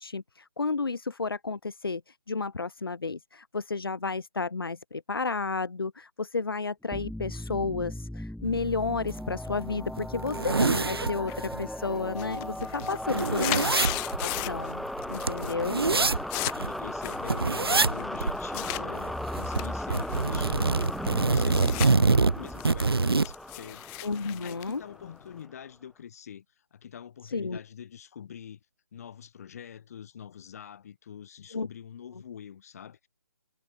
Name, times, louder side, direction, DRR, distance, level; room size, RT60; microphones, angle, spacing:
voice 1, 0.0-13.6 14.2-15.8 24.0-24.8 27.3-27.6 31.5-31.7, left 4 dB, 70° left, 1.3 m, -32 dB
sound 1, 6.9-25.4, left 1 dB, ahead, 1.5 m, -37 dB
sound 2, 9.1-9.2 9.6-9.7 10.0-11.6 12.0-12.1 12.3-16.7 17.3-18.0 18.2-18.4 18.7-19.6 19.9-23.3, right 4 dB, 80° right, 0.8 m, -25 dB
sound 3, 11.3-11.7 12.0-14.7 15.0-15.5 15.8-18.8 19.4-21.9 22.3-25.5, left 40 dB or more, 20° left, 1.9 m, -37 dB
voice 2, 13.1-13.7 15.6-23.9 24.4-26.5 26.7-28.6 28.9-33.1, left 8 dB, 40° left, 5.3 m, -45 dB
figure-of-eight pair, 150°, 12 cm